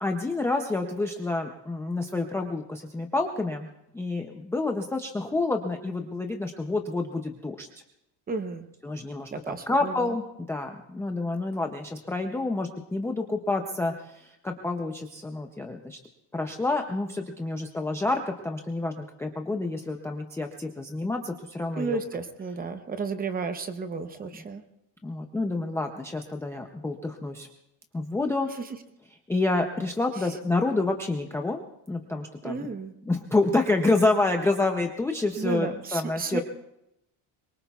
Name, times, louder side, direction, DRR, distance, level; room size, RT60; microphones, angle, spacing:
voice 1, 0.0-3.7 3.9-7.7 8.8-16.0 16.3-22.0 25.0-27.5 27.9-28.5 29.3-31.6 31.9-32.7 33.1-36.4, left 2 dB, 5° left, 2 dB, 0.4 m, -28 dB
voice 2, 8.3-8.7 9.3-10.2 21.8-24.6 32.4-32.9 35.4-36.4, right 4 dB, 20° right, 9 dB, 0.7 m, -32 dB
23.5 x 22.0 x 2.3 m, 0.84 s
cardioid pair, 180°, 44 cm